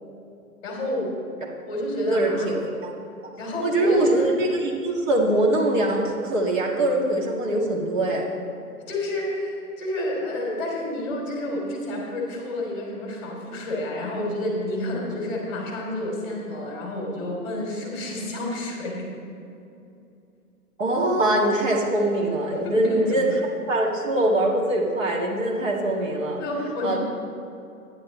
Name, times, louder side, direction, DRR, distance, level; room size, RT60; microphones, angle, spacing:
voice 1, 0.6-1.1 1.7-2.5 3.4-4.3 8.9-19.1 22.5-23.3 26.4-27.0, left 1 dB, 15° left, -2 dB, 2.9 m, -29 dB
voice 2, 2.1-2.9 3.6-8.3 20.8-23.4 23.7-26.4 26.8-27.0, right 1 dB, 55° right, -2 dB, 1.9 m, -23 dB
11.5 x 10.5 x 4.2 m, 2.7 s
hypercardioid pair, 165°, 46 cm